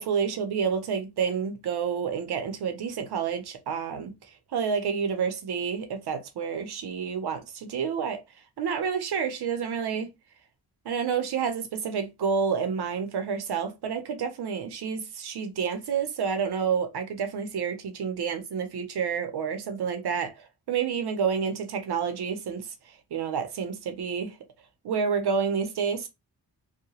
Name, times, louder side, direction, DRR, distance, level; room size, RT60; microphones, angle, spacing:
voice 1, 0.0-4.1 4.5-8.2 8.6-10.1 10.8-20.3 20.7-22.7 23.1-24.3 24.8-26.1, right 6 dB, 70° right, 0.7 m, -29 dB
2.8 x 2.2 x 2.8 m
cardioid pair, 80°, 40 cm